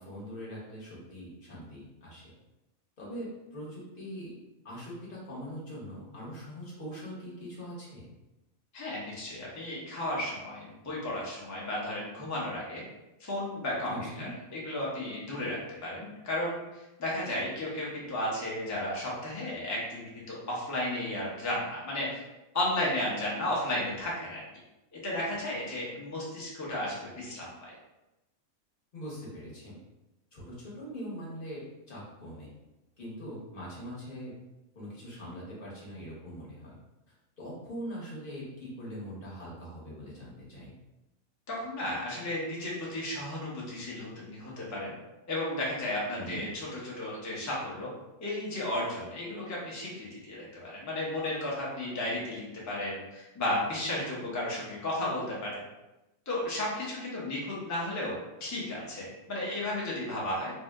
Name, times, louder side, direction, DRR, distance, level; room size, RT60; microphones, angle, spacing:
voice 1, 0.0-2.2 3.0-4.3 4.6-8.1 13.9-14.3 28.9-29.7 30.3-32.5 33.0-34.3 34.7-36.7 37.4-40.7 46.1-46.4, equal, 45° left, -6 dB, 1.0 m, -42 dB
voice 2, 8.7-12.8 13.2-16.6 17.0-22.2 22.5-24.4 24.9-27.7 41.5-44.9 45.3-47.9 48.2-55.6 56.3-60.5, left 1 dB, 20° left, -5 dB, 0.4 m, -34 dB
2.7 x 2.0 x 3.4 m, 0.97 s
omnidirectional pair, 1.5 m